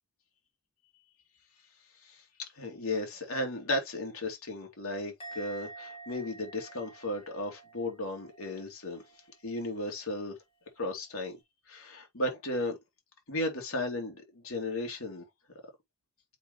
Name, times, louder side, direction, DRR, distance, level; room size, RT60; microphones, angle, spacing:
voice 1, 2.6-9.0 9.4-10.3 10.8-11.4 11.7-12.7 13.3-15.2, left 1 dB, 65° left, 2.8 m, -35 dB
Musical instrument, 5.2-8.6 8.9-9.3, right 2 dB, 25° left, 3.5 m, -48 dB
7.0 x 5.3 x 3.1 m
head